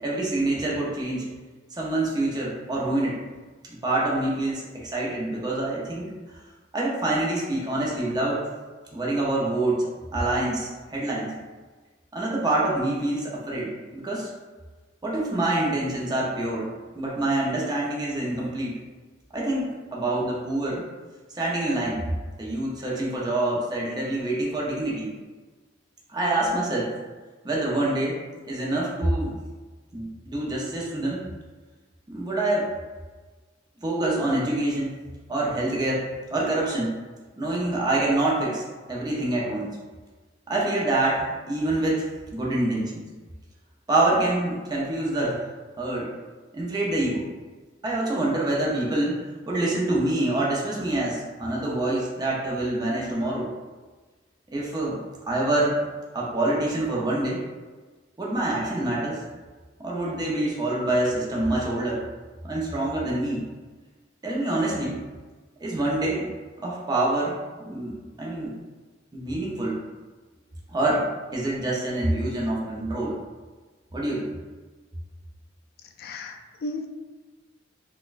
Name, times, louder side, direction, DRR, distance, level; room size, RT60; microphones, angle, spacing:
voice 1, 0.0-1.3 1.7-3.2 3.8-6.1 6.7-8.4 8.9-11.3 12.1-14.3 15.0-16.7 17.0-18.7 19.3-20.8 21.3-22.0 22.4-25.1 26.1-26.9 27.4-28.2 28.5-29.3 29.9-31.3 32.1-32.7 33.8-34.9 35.3-36.0 36.3-36.9 37.4-38.6 38.9-39.7 40.5-42.0 42.3-43.0 43.9-45.4 45.8-46.1 46.5-47.3 47.8-49.1 49.5-53.5 54.5-55.0 55.3-55.8 56.1-57.4 58.2-59.2 59.8-62.0 62.4-63.4 64.2-65.0 65.6-66.3 66.6-67.3 67.7-68.5 69.1-69.8 70.7-71.1 71.3-73.1 73.9-74.3, right 2 dB, 20° right, -5 dB, 0.5 m, -26 dB
voice 2, 76.0-76.9, left 2 dB, 55° left, 4 dB, 0.3 m, -34 dB
3.9 x 2.1 x 2.4 m, 1.3 s
head